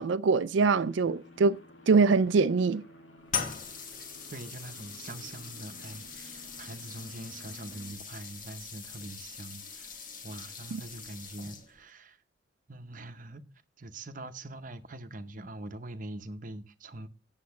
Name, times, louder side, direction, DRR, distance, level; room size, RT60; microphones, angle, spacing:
voice 1, 0.0-1.6 1.9-2.8 10.7-10.8, right 4 dB, 75° right, 0.4 m, -24 dB
sound 1, 0.8-7.9, equal, 90° left, 1.9 m, -53 dB
sound 2, 3.3-11.9, left 6 dB, 45° left, 1.2 m, -41 dB
voice 2, 4.3-9.9 10.2-12.2 12.7-13.4 13.8-17.1, right 2 dB, 45° right, 0.8 m, -43 dB
8.4 x 7.4 x 5.7 m
head